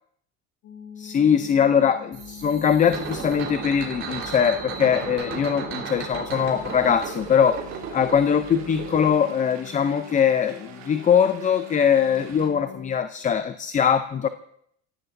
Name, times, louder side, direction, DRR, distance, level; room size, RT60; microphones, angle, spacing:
sound 1, 0.6-13.0, left 9 dB, 65° left, 2.9 m, -44 dB
voice 1, 1.0-7.6 7.9-14.3, left 7 dB, 25° left, 10 dB, 0.6 m, -21 dB
sound 2, 2.1-9.1, right 6 dB, 40° right, 4.2 m, -35 dB
sound 3, 6.3-12.5, right 7 dB, 60° right, 3.4 m, -47 dB
28.5 x 16.5 x 2.7 m, 0.68 s
cardioid pair, 125°, 31 cm